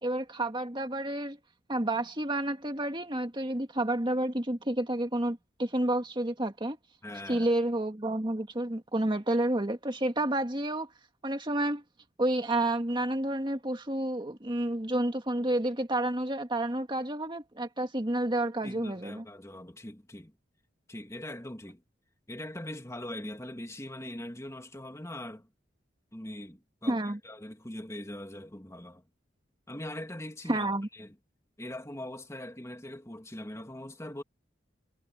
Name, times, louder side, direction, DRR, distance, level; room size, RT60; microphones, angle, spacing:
voice 1, 0.0-1.4 1.7-6.8 7.3-10.9 11.2-11.8 12.2-19.2 26.9-27.2 30.5-30.9, right 1 dB, 25° right, 1.9 m, -30 dB
voice 2, 7.0-7.5 18.6-20.3 20.9-21.8 22.3-25.5 26.1-29.0 29.7-31.2 31.6-34.2, left 1 dB, 15° left, 2.1 m, -41 dB
head